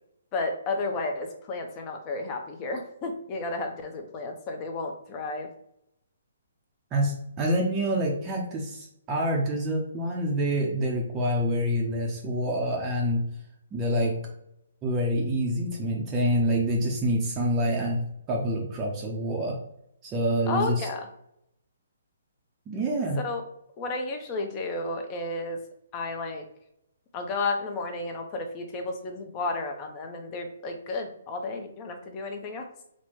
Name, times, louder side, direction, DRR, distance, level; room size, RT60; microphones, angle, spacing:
voice 1, 0.3-5.5 20.5-21.1 23.2-23.4 23.8-25.6 25.9-26.5 27.1-32.7, left 3 dB, 25° left, 4 dB, 0.7 m, -32 dB
voice 2, 6.9-13.2 13.7-14.3 14.8-19.6 20.0-20.9 22.7-23.2, equal, 20° right, -2 dB, 0.6 m, -27 dB
4.2 x 2.2 x 4.6 m, 0.78 s
hypercardioid pair, 155°, 0 cm